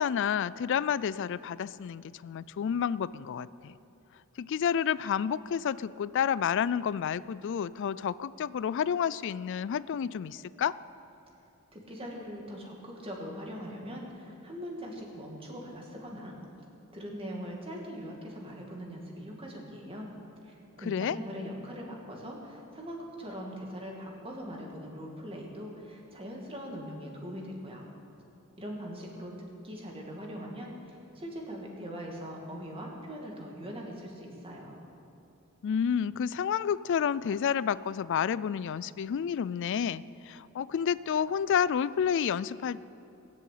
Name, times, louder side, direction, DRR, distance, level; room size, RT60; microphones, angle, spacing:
voice 1, 0.0-3.7 4.4-10.8 20.9-21.2 35.6-42.8, left 8 dB, 55° left, 18 dB, 0.3 m, -30 dB
voice 2, 11.7-16.4 16.9-20.1 20.4-27.9 28.6-34.8, equal, 25° right, -1 dB, 2.3 m, -41 dB
18.5 x 7.6 x 8.5 m, 2.9 s
head